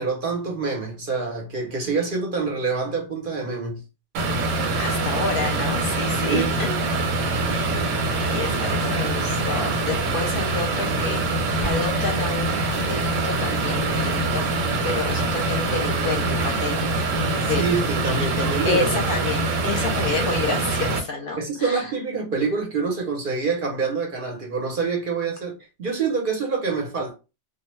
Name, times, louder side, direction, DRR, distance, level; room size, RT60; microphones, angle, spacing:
voice 1, 0.0-3.8 6.2-6.8 17.6-18.9 21.4-27.1, right 4 dB, 55° right, 0.7 m, -26 dB
sound 1, 4.1-21.0, right 2 dB, 90° right, 1.0 m, -24 dB
voice 2, 4.8-6.7 7.2-7.8 8.1-11.2 11.6-16.9 17.3-17.7 18.6-21.9, left 4 dB, 60° left, 0.7 m, -29 dB
2.2 x 2.0 x 3.0 m
omnidirectional pair, 1.3 m